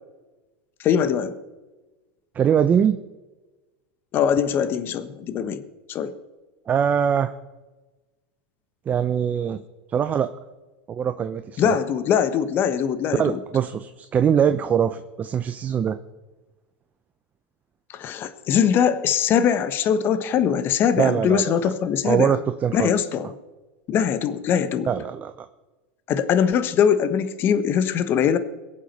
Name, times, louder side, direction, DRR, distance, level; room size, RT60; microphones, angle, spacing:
voice 1, 0.8-1.3 4.1-5.6 5.9-6.1 11.6-13.4 17.9-22.3 22.7-23.3 23.9-24.9 26.1-28.4, left 8 dB, 40° left, 12 dB, 1.2 m, -22 dB
voice 2, 2.3-3.0 6.7-7.3 8.9-9.6 9.9-10.3 10.9-11.8 13.1-16.0 21.0-21.7 22.0-22.9 24.9-25.5, right 8 dB, 30° right, 9 dB, 0.7 m, -22 dB
22.0 x 7.4 x 5.5 m, 1.2 s
hypercardioid pair, 110°, 6 cm